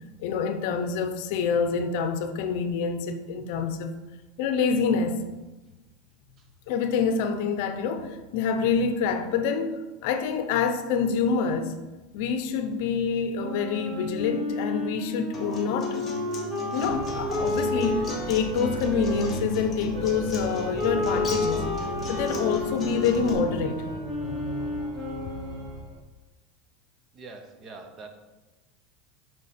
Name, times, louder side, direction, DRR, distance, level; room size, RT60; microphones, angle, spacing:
voice 1, 0.2-3.9 4.4-5.2 6.7-11.7 12.1-16.0 16.7-21.7 22.1-23.8, left 5 dB, 60° left, 8 dB, 0.7 m, -26 dB
Wind instrument woodwind instrument, 13.4-19.3 19.9-25.8, left 2 dB, 10° right, 1.7 m, -32 dB
Acoustic guitar, 15.3-23.3, left 3 dB, 20° left, 1.1 m, -36 dB
Organ, 16.8-26.0, right 1 dB, 45° right, 1.5 m, -38 dB
voice 2, 27.1-28.1, right 3 dB, 30° right, 6 dB, 0.9 m, -44 dB
6.7 x 5.8 x 4.3 m, 1.1 s
supercardioid pair, 150°, 0 cm